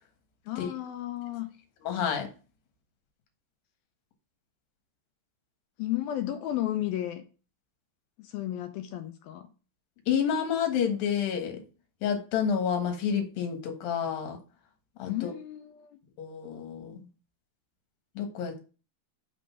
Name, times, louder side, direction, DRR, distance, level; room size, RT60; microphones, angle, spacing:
voice 1, 0.5-1.5 5.8-7.2 8.2-9.5 15.1-16.0, left 13 dB, 85° left, 2.2 m, -33 dB
voice 2, 1.8-2.3 10.1-11.6 12.0-14.4 15.0-15.3 16.2-17.0 18.2-18.6, left 7 dB, 65° left, 3.0 m, -29 dB
6.2 x 5.3 x 5.7 m
omnidirectional pair, 4.8 m